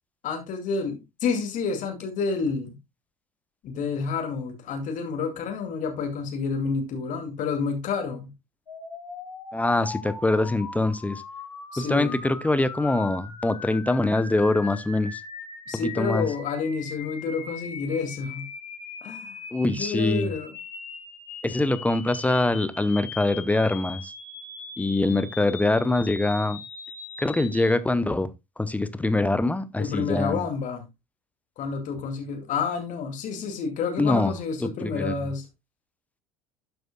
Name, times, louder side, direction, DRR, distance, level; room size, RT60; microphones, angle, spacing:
voice 1, 0.2-2.8 3.6-8.3 11.7-12.2 15.7-18.5 19.0-19.4 19.6-20.5 29.8-30.8 31.6-35.5, left 5 dB, 45° left, 2.3 m, -29 dB
sound 1, 8.7-27.7, left 4 dB, 80° left, 2.7 m, -40 dB
voice 2, 9.5-11.2 11.8-15.2 16.0-16.3 19.5-20.3 21.4-24.1 24.8-26.6 27.2-28.3 28.6-30.4 34.0-34.3 34.6-35.1, left 2 dB, 10° left, 0.7 m, -24 dB
12.0 x 7.8 x 2.2 m
figure-of-eight pair, 70°, 19 cm